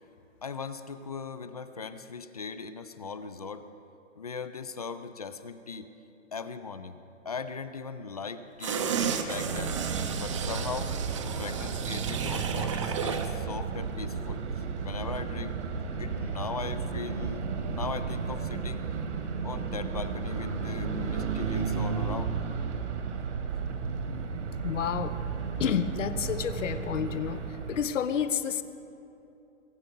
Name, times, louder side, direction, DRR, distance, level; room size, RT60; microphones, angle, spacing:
voice 1, 0.4-3.7 4.2-5.9 6.3-7.0 7.2-8.9 9.2-9.8 10.2-10.9 11.2-15.6 16.0-18.8 19.4-22.4, left 5 dB, 30° left, 11 dB, 0.4 m, -39 dB
sound 1, 8.6-13.4 13.7-13.8, right 7 dB, 25° right, 0.6 m, -33 dB
sound 2, 9.2-28.0, right 5 dB, 65° right, 1.5 m, -33 dB
voice 2, 24.6-25.2 25.6-28.6, left 8 dB, 75° left, 12 dB, 0.9 m, -30 dB
21.5 x 8.9 x 5.3 m, 2.9 s
hypercardioid pair, 165°, 38 cm